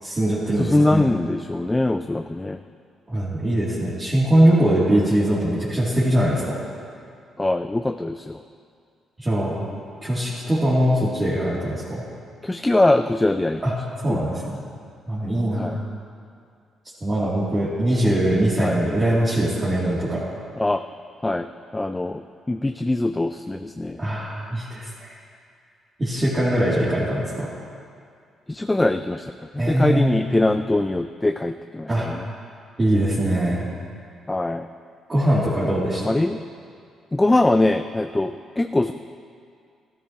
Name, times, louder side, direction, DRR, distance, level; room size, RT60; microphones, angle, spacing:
voice 1, 0.0-1.0 3.1-6.6 9.2-9.5 10.0-12.0 13.6-13.7 14.0-14.6 15.1-15.8 17.0-20.2 24.0-25.1 26.0-27.5 29.6-30.3 31.9-32.1 32.8-33.7 35.1-36.1, right 1 dB, 25° right, -10 dB, 2.7 m, -21 dB
voice 2, 0.6-2.6 7.4-8.4 12.4-13.6 14.1-14.2 15.6-15.8 17.9-18.2 18.6-18.8 20.6-20.8 21.2-24.0 28.5-32.3 34.3-34.7 36.0-36.4 37.1-38.9, left 2 dB, 15° left, 8 dB, 0.3 m, -22 dB
15.0 x 12.5 x 2.9 m, 2.3 s
cardioid pair, 90°, 0 cm